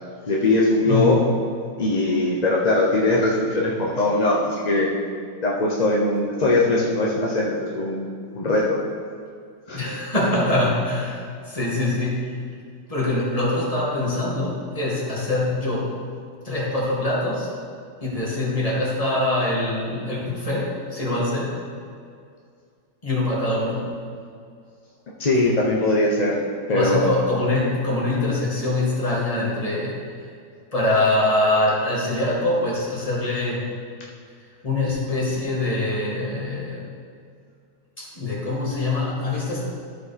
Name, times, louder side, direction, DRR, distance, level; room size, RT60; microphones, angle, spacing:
voice 1, 0.3-1.2 1.8-4.9 5.4-8.1 8.3-8.8 9.7-9.8 25.2-26.4 26.7-27.2, left 2 dB, 40° left, -3 dB, 0.5 m, -21 dB
voice 2, 9.7-12.3 12.9-15.9 16.4-17.5 18.0-21.5 23.0-23.8 26.7-30.0 30.7-33.6 34.6-36.8 38.0-39.7, left 2 dB, 20° left, -6 dB, 2.0 m, -24 dB
13.5 x 4.8 x 4.2 m, 2.2 s
omnidirectional pair, 2.0 m